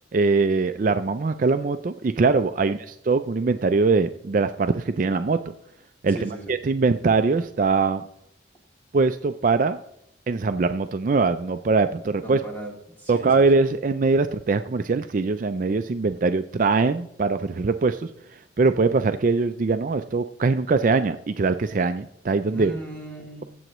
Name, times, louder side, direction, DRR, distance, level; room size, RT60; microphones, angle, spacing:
voice 1, 0.1-5.4 6.0-8.0 8.9-9.8 10.3-12.4 13.1-18.1 18.6-22.7, right 4 dB, 45° right, 9 dB, 0.4 m, -22 dB
voice 2, 6.1-6.5 12.2-13.5 22.5-23.4, right 1 dB, 10° left, -2 dB, 2.5 m, -37 dB
22.5 x 7.8 x 3.1 m, 0.78 s
head